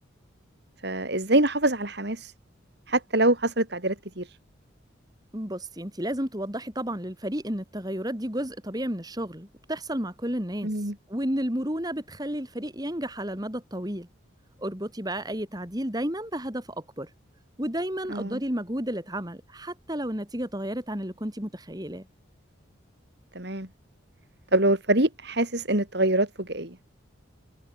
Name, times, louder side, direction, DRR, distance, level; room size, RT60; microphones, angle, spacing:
voice 1, 0.8-2.3 2.9-4.4 10.6-10.9 18.1-18.4 23.4-23.7 24.5-26.8, right 1 dB, 55° right, 3.5 m, -25 dB
voice 2, 5.3-10.7 11.1-14.1 14.6-17.1 17.6-22.1, right 1 dB, 20° right, 3.5 m, -32 dB
head